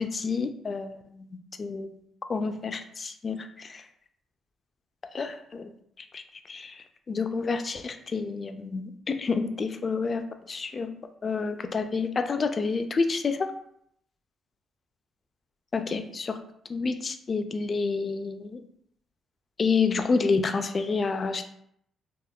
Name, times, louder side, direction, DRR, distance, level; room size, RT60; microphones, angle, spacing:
voice 1, 0.0-1.9 2.3-3.8 5.1-5.7 6.1-6.2 6.5-11.0 11.2-13.5 15.7-16.4 16.7-18.6 19.6-21.4, left 4 dB, 40° left, 8 dB, 0.3 m, -29 dB
3.5 x 2.1 x 2.3 m, 0.70 s
cardioid pair, 90°, 0 cm